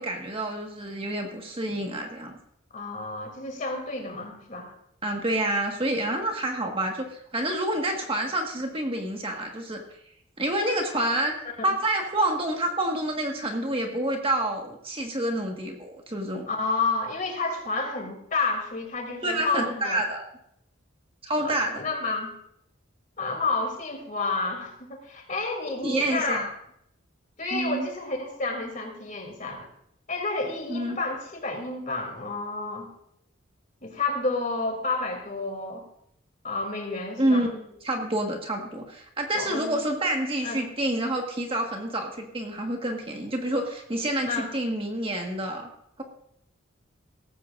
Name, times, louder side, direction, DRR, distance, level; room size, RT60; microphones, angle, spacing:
voice 1, 0.0-2.3 5.0-9.8 10.4-11.3 11.6-16.5 19.2-20.2 21.2-21.8 25.8-26.5 27.5-27.9 30.7-31.0 37.2-45.7, right 1 dB, 25° right, 1 dB, 1.6 m, -28 dB
voice 2, 2.7-4.7 11.6-11.7 16.5-20.0 21.4-22.3 23.2-26.5 27.4-29.7 30.1-32.9 33.8-35.8 36.4-37.4 39.3-39.8 40.4-40.6 44.2-44.5, left 3 dB, 40° left, 2 dB, 2.9 m, -30 dB
18.0 x 15.0 x 2.6 m, 0.73 s
head